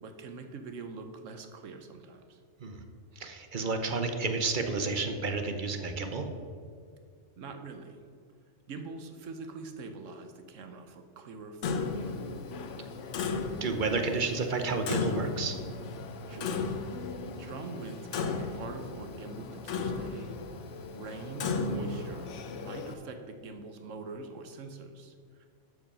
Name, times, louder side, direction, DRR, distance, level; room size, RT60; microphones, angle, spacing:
voice 1, 0.0-2.4 7.4-8.0 8.7-12.1 16.3-16.7 17.4-20.3 20.6-22.3 22.6-25.5, right 3 dB, 85° right, 6 dB, 1.2 m, -44 dB
voice 2, 3.2-6.3 13.6-15.6, right 3 dB, 45° right, 6 dB, 0.9 m, -31 dB
Clock, 11.6-22.9, left 4 dB, 75° left, 1.0 m, -35 dB
12.5 x 5.1 x 5.5 m, 2.1 s
omnidirectional pair, 1.3 m